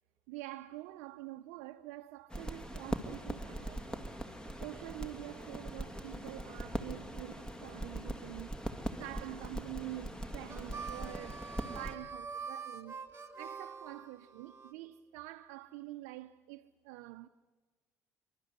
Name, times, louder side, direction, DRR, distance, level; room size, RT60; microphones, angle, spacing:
voice 1, 0.3-4.0 4.6-8.5 9.0-13.0 13.4-17.3, right 17 dB, 75° right, 0.6 m, -47 dB
sound 1, 2.3-12.0, right 1 dB, 10° left, 2.3 m, -41 dB
Harmonica, 10.5-14.7, right 5 dB, 30° right, 2.4 m, -45 dB
27.5 x 13.0 x 9.5 m
hypercardioid pair, 60°, 8 cm